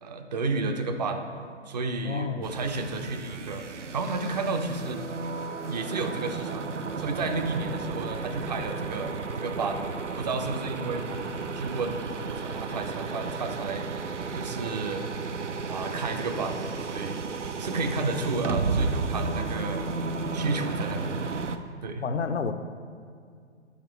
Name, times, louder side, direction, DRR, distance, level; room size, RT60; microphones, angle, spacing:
voice 1, 0.0-1.3 1.7-3.6 3.9-5.1 5.7-6.7 7.0-13.9 14.3-15.1 15.6-17.2 17.6-19.9 20.3-21.2 21.8-22.0, right 3 dB, 40° right, 6 dB, 0.5 m, -32 dB
voice 2, 2.0-2.5 18.1-18.3 22.0-22.5, left 5 dB, 75° left, 8 dB, 0.5 m, -30 dB
sound 1, 2.4-21.6, right 4 dB, 85° right, 0.5 m, -33 dB
7.2 x 4.6 x 4.4 m, 2.2 s
figure-of-eight pair, 125°, 35 cm